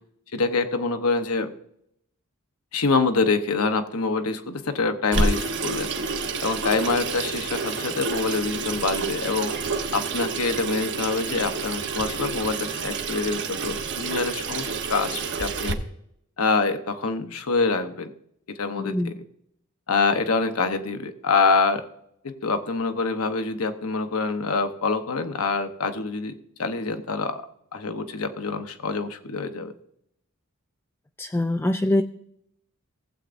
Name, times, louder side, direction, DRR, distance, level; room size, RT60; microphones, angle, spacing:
voice 1, 0.3-1.5 2.7-5.9 6.4-9.5 9.9-15.8 16.4-18.1 18.5-19.0 19.9-21.9 22.2-26.3 26.6-27.4 27.7-29.7, left 4 dB, 85° left, 8 dB, 0.9 m, -25 dB
Water tap faucet / Sink (filling or washing), 5.1-15.7, right 4 dB, 55° right, 0.9 m, -29 dB
voice 2, 18.8-19.1 31.2-32.0, left 1 dB, 10° left, 5 dB, 0.3 m, -23 dB
16.5 x 8.1 x 2.6 m, 0.74 s
head